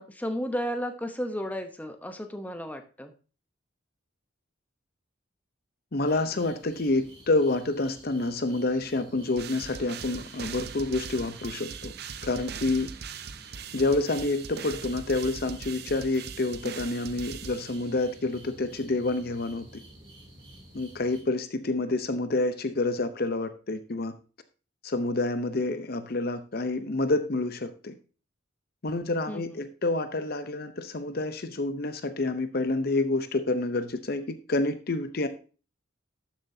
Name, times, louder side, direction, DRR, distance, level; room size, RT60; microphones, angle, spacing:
voice 1, 0.0-3.1 29.3-29.6, equal, 10° left, 6 dB, 0.9 m, -33 dB
voice 2, 5.9-11.9 12.2-12.9 13.7-19.7 20.7-24.1 24.8-27.9 28.8-35.3, left 2 dB, 50° left, 10 dB, 0.7 m, -28 dB
sound 1, 6.0-21.2, right 1 dB, 25° right, 2.9 m, -51 dB
sound 2, 9.4-18.2, right 6 dB, 55° right, 0.6 m, -41 dB
12.5 x 7.4 x 2.7 m, 0.35 s
head